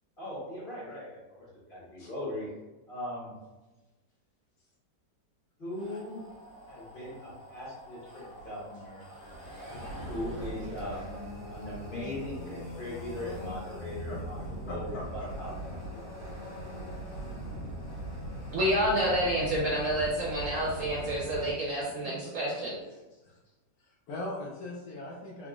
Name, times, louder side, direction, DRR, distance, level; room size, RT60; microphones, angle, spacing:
voice 1, 0.2-2.5 2.9-3.3 5.6-6.2 6.7-9.0 10.1-11.0 11.5-15.5 15.9-16.1, left 1 dB, 30° left, -7 dB, 1.3 m, -39 dB
sound 1, 5.7-21.5, right 1 dB, 85° left, 2.1 m, -41 dB
voice 2, 14.0-15.5 16.8-16.9 17.2-17.3 22.0-22.1 22.5-22.6 22.9-23.4 23.8-25.5, left 2 dB, 70° left, -3 dB, 1.0 m, -42 dB
voice 3, 18.5-22.7, equal, 60° right, -4 dB, 0.9 m, -29 dB
3.6 x 3.6 x 2.4 m, 1.1 s
omnidirectional pair, 1.9 m